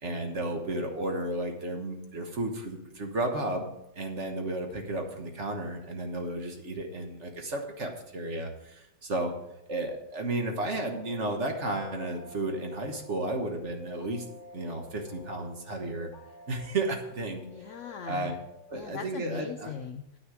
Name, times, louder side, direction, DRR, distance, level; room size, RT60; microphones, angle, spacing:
voice 1, 0.0-9.3 9.7-14.2 14.5-16.1 16.5-17.4 18.1-18.4 18.7-19.7, right 2 dB, 45° right, 3 dB, 1.4 m, -33 dB
sound 1, 10.3-18.8, left 3 dB, 45° left, 1.6 m, -50 dB
voice 2, 17.5-18.4 18.7-20.2, left 8 dB, 75° left, 8 dB, 0.7 m, -39 dB
9.7 x 8.6 x 4.8 m, 0.85 s
omnidirectional pair, 1.9 m